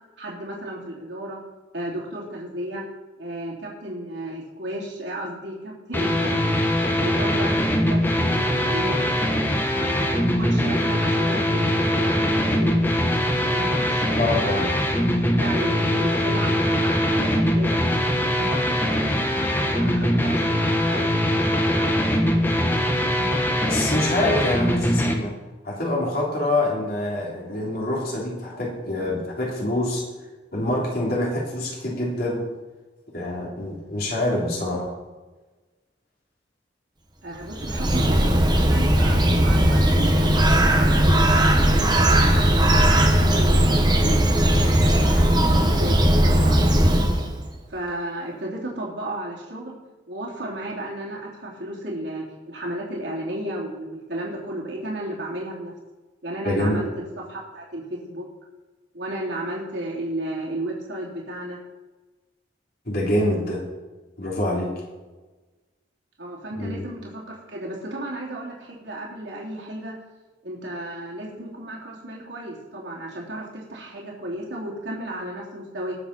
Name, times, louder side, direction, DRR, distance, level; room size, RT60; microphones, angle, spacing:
voice 1, 0.2-1.4 1.7-2.8 3.2-6.6 7.0-7.6 7.9-9.1 9.7-13.0 13.5-14.7 15.4-17.8 18.4-22.0 37.2-41.3 41.7-44.2 44.8-46.9 47.7-49.8 50.1-55.7 56.2-58.3 58.9-61.6 66.2-70.0 70.4-76.0, right 1 dB, 65° right, -4 dB, 3.2 m, -33 dB
sound 1, 5.9-25.1, equal, 10° left, 1.1 m, -22 dB
voice 2, 14.2-14.7 23.6-25.4 25.6-30.1 30.5-32.5 33.1-34.9 56.4-56.8 62.8-63.6 64.2-64.8 66.6-66.8, left 1 dB, 50° left, -4 dB, 3.3 m, -25 dB
Bird, 37.4-47.4, right 1 dB, 20° right, 1.4 m, -18 dB
20.0 x 7.2 x 4.3 m, 1.2 s
head